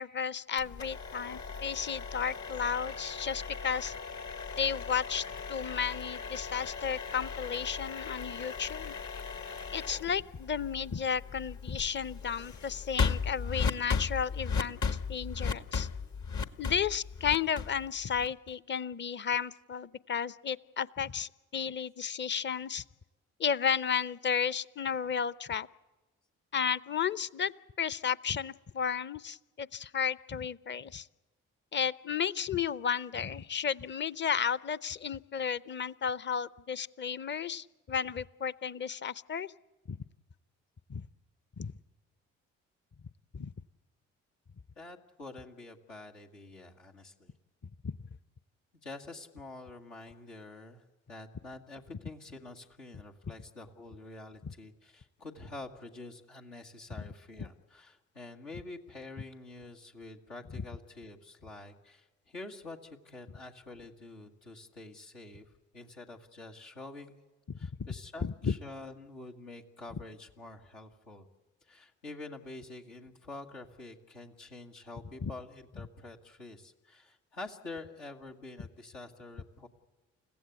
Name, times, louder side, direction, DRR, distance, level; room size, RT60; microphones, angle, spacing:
voice 1, 0.0-3.9 4.6-5.2 5.5-8.9 9.7-15.9 16.6-22.8 23.4-25.7 26.5-27.5 27.8-31.1 31.7-39.5 39.9-40.0 40.9-41.1 41.6-41.7 43.3-43.5 47.8-47.9 67.6-67.7 68.2-68.5 75.2-75.3, left 7 dB, 30° left, 19 dB, 0.7 m, -33 dB
sound 1, 0.6-18.5, left 5 dB, 50° left, 1.3 m, -37 dB
voice 2, 44.7-47.3 48.8-67.1 67.6-71.2 71.6-79.7, left 2 dB, 85° left, -2 dB, 1.8 m, -47 dB
29.5 x 15.5 x 8.2 m, 1.2 s
hypercardioid pair, 45°, 37 cm